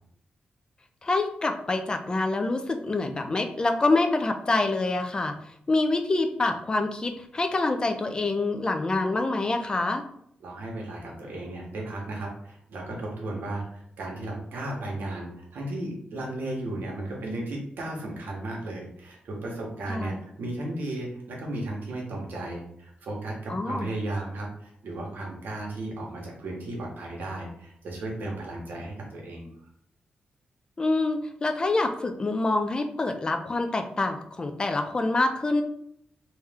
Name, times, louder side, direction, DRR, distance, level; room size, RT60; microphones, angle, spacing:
voice 1, 1.0-5.4 5.7-10.1 19.9-20.1 23.5-23.9 30.8-35.6, left 2 dB, 25° left, 6 dB, 0.4 m, -26 dB
voice 2, 10.4-29.5, right 1 dB, 90° right, -1 dB, 1.2 m, -35 dB
3.1 x 3.1 x 3.5 m, 0.70 s
wide cardioid pair, 140°, 3 cm